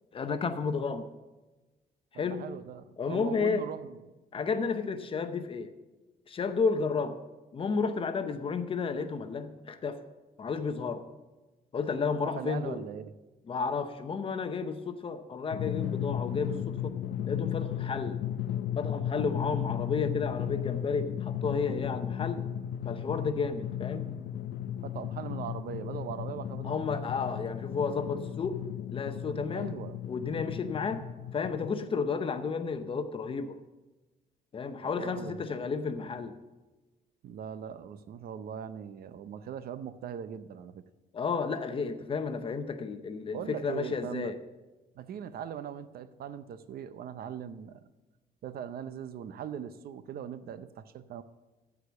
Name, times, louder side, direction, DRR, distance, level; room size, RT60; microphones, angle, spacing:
voice 1, 0.1-1.1 2.1-2.4 3.0-3.7 4.3-5.7 6.3-7.2 7.5-10.0 10.4-11.1 11.7-12.8 13.5-17.0 17.3-18.2 18.7-22.4 22.8-24.1 26.6-28.6 28.9-29.8 30.1-31.1 31.3-33.6 34.5-36.4 41.1-44.4, left 5 dB, 30° left, 9 dB, 0.7 m, -32 dB
voice 2, 2.1-4.0 12.2-13.1 24.8-27.1 29.5-30.0 34.8-35.3 37.2-40.8 43.3-44.3 45.0-47.8 48.4-51.2, right 8 dB, 60° right, 13 dB, 0.6 m, -40 dB
Drum, 15.5-31.7, left 10 dB, 75° left, 0.6 m, -35 dB
14.5 x 4.9 x 6.8 m, 1.1 s
cardioid pair, 170°, 17 cm